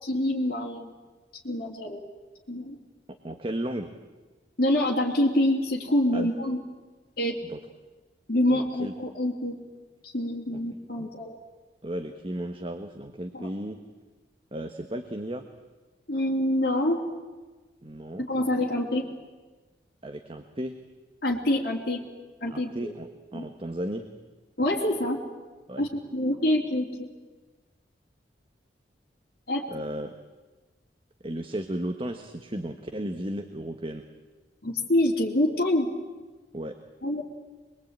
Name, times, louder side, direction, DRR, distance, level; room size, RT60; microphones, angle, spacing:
voice 1, 0.0-0.9 1.4-2.0 2.5-2.8 4.6-6.6 7.2-7.4 8.3-9.5 10.0-11.4 13.3-13.5 16.1-17.0 18.2-19.1 21.2-22.0 22.4-22.9 23.3-23.4 24.6-25.2 25.8-27.1 29.5-29.6 34.6-35.9 37.0-37.2, left 1 dB, 55° left, -3 dB, 3.3 m, -26 dB
voice 2, 3.2-3.9 6.1-6.3 7.4-7.6 8.5-8.9 11.0-11.1 11.8-13.8 14.5-15.4 17.8-18.3 20.0-20.7 22.5-24.0 25.7-25.8 29.7-30.2 31.2-34.0 36.5-36.8, right 1 dB, 30° right, 6 dB, 1.3 m, -34 dB
24.5 x 22.0 x 8.9 m, 1.3 s
head